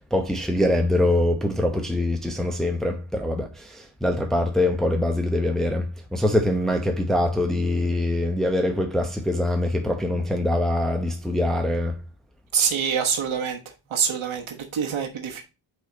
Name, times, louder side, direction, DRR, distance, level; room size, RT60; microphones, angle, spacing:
voice 1, 0.0-5.9 6.1-12.0, left 1 dB, ahead, 0.9 m, -23 dB
voice 2, 12.5-13.6 13.9-15.4, right 7 dB, 75° right, 1.2 m, -25 dB
5.8 x 4.4 x 3.9 m
wide cardioid pair, 95°, 48 cm